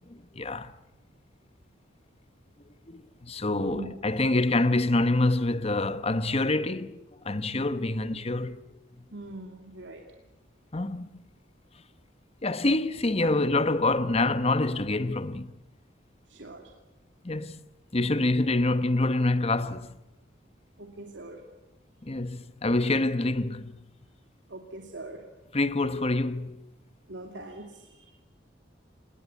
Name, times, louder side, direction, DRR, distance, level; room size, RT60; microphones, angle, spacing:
voice 1, 0.3-0.7 2.9-8.7 10.7-11.1 12.4-15.5 17.2-17.6 17.9-19.9 22.0-23.8 25.5-26.6, left 2 dB, 35° left, 1.0 m, -26 dB
voice 2, 3.5-4.0 9.1-10.0 13.2-13.3 16.3-16.6 20.8-21.4 24.5-25.2 27.1-28.1, right 2 dB, 80° right, 2.6 m, -42 dB
28.0 x 19.0 x 9.5 m
head